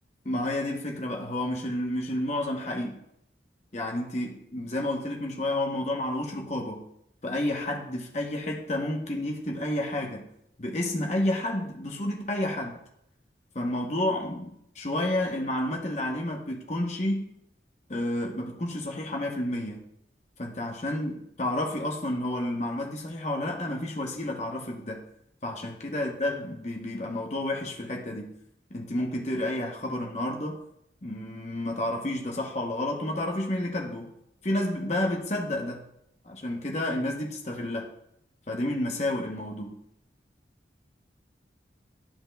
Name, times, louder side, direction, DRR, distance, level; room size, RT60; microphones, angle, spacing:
voice 1, 0.2-3.0 3.7-6.9 7.2-10.3 10.6-12.8 13.5-17.3 17.9-19.8 20.4-25.0 25.4-28.3 28.7-30.6 31.0-34.1 34.4-35.8 36.2-37.9 38.5-39.7, left 1 dB, 40° left, 0.8 m, -30 dB
11.5 x 5.5 x 2.2 m
head